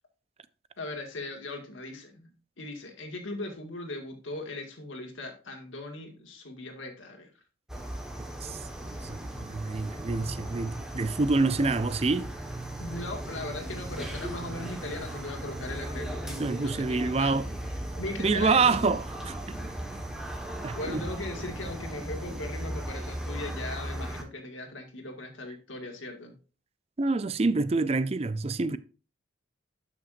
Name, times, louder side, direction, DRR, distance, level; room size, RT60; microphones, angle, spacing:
voice 1, 0.8-2.3 2.6-7.3 12.8-17.4 18.0-18.7 20.8-26.4, left 2 dB, 90° left, 2.0 m, -39 dB
sound 1, 7.7-24.2, right 1 dB, 5° right, 1.3 m, -37 dB
voice 2, 8.4-12.3 16.4-17.5 18.2-19.4 20.6-21.0 27.0-28.8, right 3 dB, 30° right, 0.4 m, -27 dB
12.5 x 5.9 x 2.6 m
head